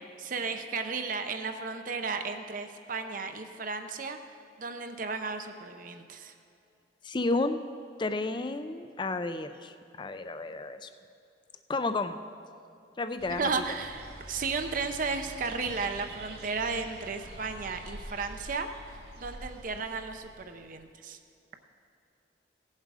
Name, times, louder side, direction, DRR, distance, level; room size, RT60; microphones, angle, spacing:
voice 1, 0.2-4.2 4.6-6.3 13.3-21.2, right 4 dB, 50° right, 6 dB, 0.6 m, -34 dB
voice 2, 7.0-7.6 8.0-10.9 11.7-12.2 13.0-13.6, left 3 dB, 25° left, 10 dB, 0.5 m, -31 dB
sound 1, 13.2-20.8, right 1 dB, 70° right, 2.2 m, -46 dB
17.0 x 7.4 x 4.9 m, 2.6 s
head